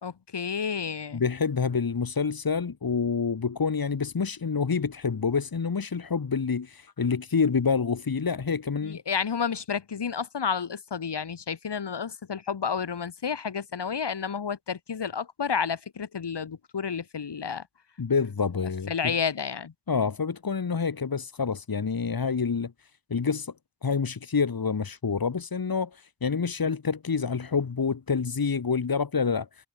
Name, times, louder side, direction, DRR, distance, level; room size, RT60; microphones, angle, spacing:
voice 1, 0.0-1.2 8.8-17.6 18.9-19.7, left 6 dB, 75° left, 3.2 m, -31 dB
voice 2, 1.1-9.0 18.0-19.2 19.9-22.7 23.1-23.5 23.8-25.9 26.2-29.5, left 5 dB, 55° left, 2.7 m, -27 dB
cardioid pair, 60°, 42 cm